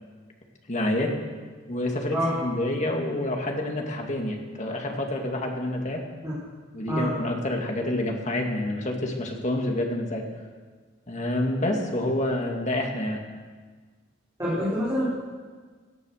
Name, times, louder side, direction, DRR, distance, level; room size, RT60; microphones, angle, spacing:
voice 1, 0.7-1.1 1.7-6.0 6.7-10.2 11.1-13.2, left 1 dB, 35° left, 1 dB, 2.2 m, -28 dB
voice 2, 6.9-7.2 14.4-15.0, equal, 15° right, -10 dB, 4.9 m, -26 dB
17.5 x 11.5 x 6.5 m, 1.5 s
head